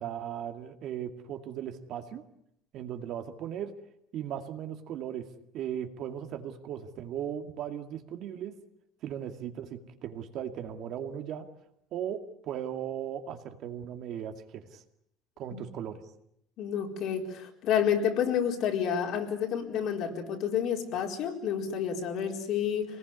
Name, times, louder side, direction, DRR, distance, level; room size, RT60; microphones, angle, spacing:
voice 1, 0.0-2.2 2.7-3.7 4.1-5.3 5.5-8.5 9.0-11.5 11.9-14.8 15.4-16.0, right 9 dB, 50° right, 6 dB, 2.3 m, -37 dB
voice 2, 16.6-23.0, left 8 dB, 55° left, 2 dB, 4.5 m, -29 dB
26.5 x 20.0 x 9.8 m, 0.75 s
cardioid pair, 155°, 0 cm